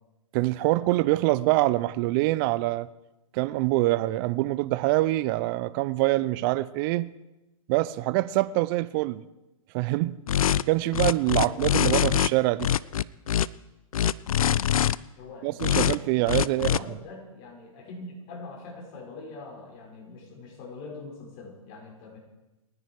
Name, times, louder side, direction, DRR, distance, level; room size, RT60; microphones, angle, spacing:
voice 1, 0.3-2.9 3.3-7.1 7.7-9.2 9.7-10.2 10.7-12.7 15.4-16.8, right 18 dB, 40° right, 0.7 m, -25 dB
sound 1, 10.3-10.6 10.9-12.3 12.6-13.5 13.9-15.0 15.6-16.0 16.3-16.8, left 10 dB, 80° left, 0.5 m, -23 dB
voice 2, 11.4-11.8 15.2-16.0 16.2-22.2, left 3 dB, 40° left, 5.9 m, -43 dB
29.0 x 10.0 x 4.8 m
hypercardioid pair, 130°, 18 cm